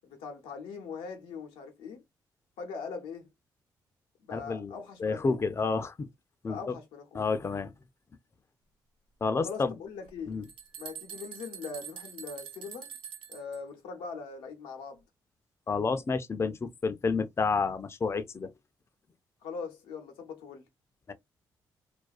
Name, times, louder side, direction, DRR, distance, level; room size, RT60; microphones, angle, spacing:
voice 1, 0.0-2.0 2.6-3.3 4.2-5.4 6.5-7.3 9.4-10.4 10.8-13.0 13.3-15.0 19.4-20.7, left 5 dB, 85° left, 0.6 m, -41 dB
voice 2, 4.3-6.1 6.4-6.6 7.1-7.7 9.2-9.7 10.3-10.4 15.7-18.5 21.1-21.2, left 4 dB, 30° left, 0.4 m, -30 dB
sound 1, 10.1-10.2 10.4-13.6, right 8 dB, 75° right, 0.6 m, -44 dB
2.3 x 2.2 x 2.4 m
supercardioid pair, 50°, 9 cm